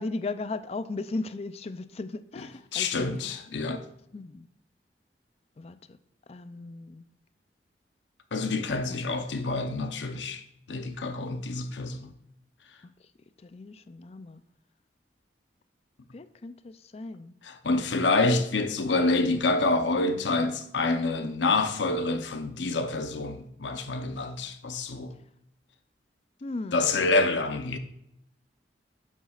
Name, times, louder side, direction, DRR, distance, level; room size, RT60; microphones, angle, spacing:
voice 1, 0.0-3.1 4.1-4.5 5.6-6.0 6.3-7.1 8.9-9.2 13.0-13.1 13.4-14.4 16.1-17.3 26.4-27.1, left 3 dB, 35° left, 0.4 m, -37 dB
voice 2, 2.7-3.9 8.3-10.4 10.7-12.1 17.4-25.1 26.7-27.8, left 3 dB, 85° left, 0.8 m, -27 dB
9.6 x 7.3 x 2.4 m
head